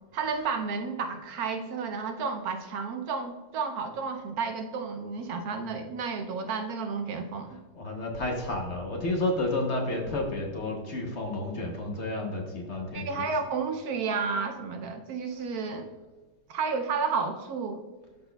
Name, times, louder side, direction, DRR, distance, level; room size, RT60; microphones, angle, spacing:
voice 1, 0.1-7.6 12.9-15.9 16.5-17.8, right 5 dB, 70° right, 6 dB, 1.0 m, -31 dB
voice 2, 7.7-13.2, left 2 dB, 50° left, 1 dB, 1.0 m, -31 dB
12.0 x 4.2 x 2.2 m, 1.3 s
omnidirectional pair, 1.8 m